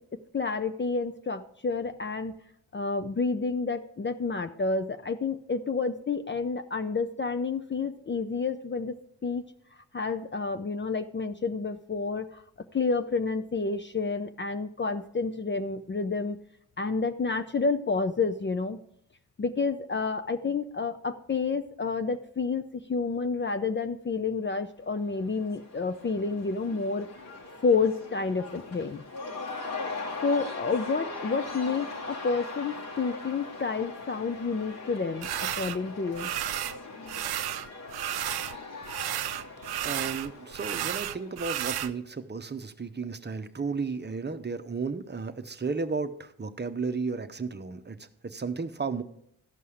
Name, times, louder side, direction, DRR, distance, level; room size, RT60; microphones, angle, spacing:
voice 1, 0.3-2.3 2.7-8.9 9.2-9.4 9.9-12.4 12.7-16.4 16.8-18.8 19.4-27.1 27.6-29.0 30.2-36.3, left 4 dB, 30° left, 8 dB, 0.6 m, -29 dB
Cheering / Crowd, 24.9-41.8, left 3 dB, 65° left, 2.2 m, -41 dB
sound 1, 35.2-35.8 36.1-36.8 37.1-38.6 38.8-41.9, right 12 dB, 70° right, 0.6 m, -32 dB
voice 2, 39.8-49.0, right 4 dB, 25° right, 10 dB, 0.8 m, -33 dB
13.5 x 5.5 x 5.0 m, 0.74 s
supercardioid pair, 50°, 40 cm